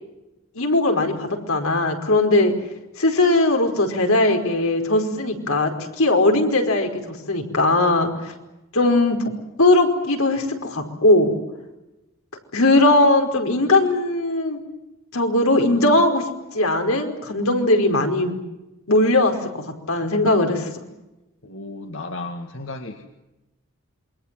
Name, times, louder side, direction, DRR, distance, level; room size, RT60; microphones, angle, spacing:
voice 1, 0.5-2.5 3.0-5.7 6.0-8.3 8.7-9.2 9.6-11.4 12.5-14.6 15.1-16.2 16.5-18.4 18.9-19.3 19.9-20.7, left 2 dB, 85° left, 4 dB, 5.0 m, -19 dB
voice 2, 21.4-23.1, left 2 dB, 65° left, 5 dB, 2.1 m, -34 dB
28.0 x 23.0 x 7.7 m, 0.98 s
head